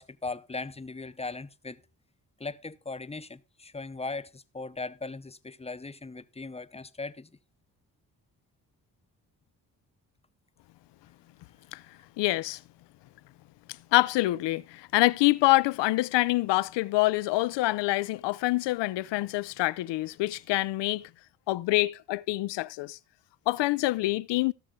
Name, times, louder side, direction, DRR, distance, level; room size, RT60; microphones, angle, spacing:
voice 1, 0.0-1.8 2.4-7.3, left 3 dB, 15° left, 0.8 m, -38 dB
voice 2, 12.2-12.6 13.9-21.0 21.5-23.0 23.5-24.5, left 19 dB, 85° left, 0.6 m, -26 dB
16.5 x 6.5 x 3.7 m
cardioid pair, 70°, 41 cm